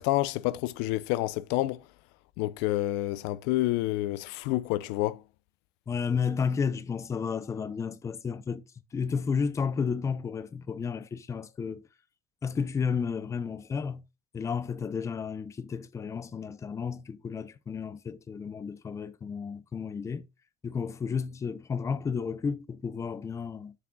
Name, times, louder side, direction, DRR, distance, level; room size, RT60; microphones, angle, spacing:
voice 1, 0.0-1.8 2.4-5.2, left 17 dB, 80° left, 0.5 m, -28 dB
voice 2, 5.9-8.6 8.9-11.8 12.4-14.0 14.3-20.3 20.6-23.7, left 6 dB, 15° left, 0.5 m, -32 dB
7.5 x 6.0 x 2.2 m
cardioid pair, 145°, 17 cm